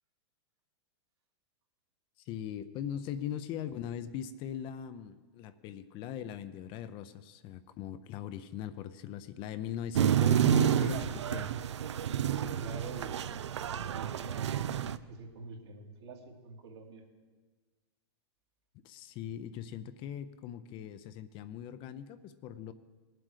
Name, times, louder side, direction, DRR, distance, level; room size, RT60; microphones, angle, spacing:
voice 1, 2.2-11.9 18.8-22.7, left 10 dB, 35° left, 12 dB, 0.6 m, -40 dB
sound 1, 9.9-15.0, right 10 dB, 85° right, 0.5 m, -29 dB
voice 2, 12.3-14.5 15.1-17.0, right 3 dB, 70° right, 0 dB, 2.5 m, -46 dB
19.0 x 7.6 x 4.9 m, 1.3 s
hypercardioid pair, 125°, 14 cm